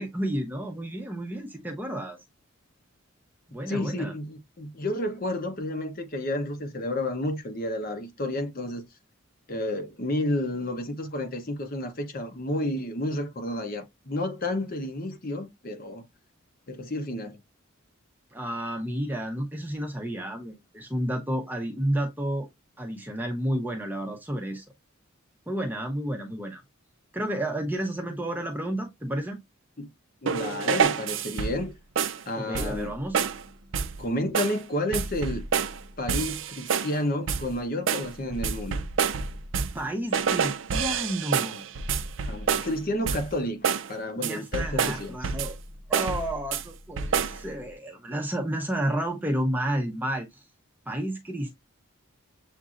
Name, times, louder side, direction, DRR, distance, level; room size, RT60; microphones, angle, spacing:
voice 1, 0.0-2.2 3.5-4.1 18.3-22.5 22.8-24.6 25.5-26.6 27.1-29.4 32.4-33.2 39.7-41.6 44.2-45.6 45.9-50.4 50.9-51.5, right 1 dB, 10° right, 0.7 m, -31 dB
voice 2, 3.7-8.9 9.5-16.0 16.7-17.4 29.8-29.9 30.2-31.7 32.3-32.9 34.0-35.5 36.0-38.9 42.3-45.2, left 1 dB, 45° left, 0.8 m, -31 dB
sound 1, 30.3-31.7 32.0-32.2 32.5-32.9 33.1-33.4 33.7-34.0 34.3-34.6 34.9-35.8 36.1-37.0 37.3-37.5 37.9-39.8 40.1-42.8 43.1-43.4 43.6-43.9 44.2-45.6 45.9-46.6 47.0-47.4, right 6 dB, 60° right, 0.4 m, -28 dB
7.2 x 2.6 x 2.5 m
head